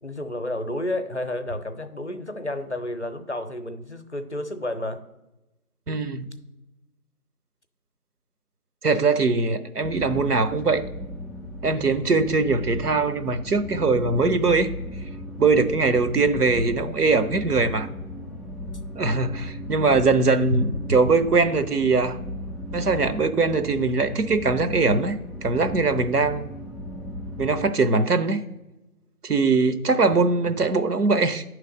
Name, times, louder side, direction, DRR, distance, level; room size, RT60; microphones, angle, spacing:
voice 1, 0.0-5.0, left 1 dB, 50° left, 9 dB, 0.5 m, -31 dB
voice 2, 5.9-6.3 8.8-10.8 11.6-14.7 15.4-17.9 19.0-22.2 22.7-25.2 25.4-26.5 27.4-28.4 29.2-31.4, right 3 dB, 80° right, 9 dB, 0.8 m, -21 dB
sound 1, 9.8-27.7, left 1 dB, ahead, 0.4 m, -36 dB
9.0 x 3.3 x 4.9 m, 0.97 s
figure-of-eight pair, 170°, 46 cm